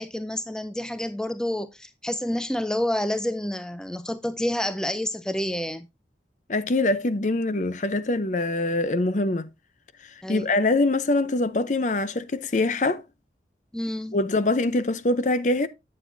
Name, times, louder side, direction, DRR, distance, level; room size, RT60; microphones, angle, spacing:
voice 1, 0.0-5.9 10.2-10.5 13.7-14.2, left 1 dB, 5° left, 0.4 m, -29 dB
voice 2, 6.5-9.5 10.3-13.0 14.1-15.7, left 2 dB, 45° left, 0.7 m, -24 dB
9.1 x 7.6 x 2.6 m
head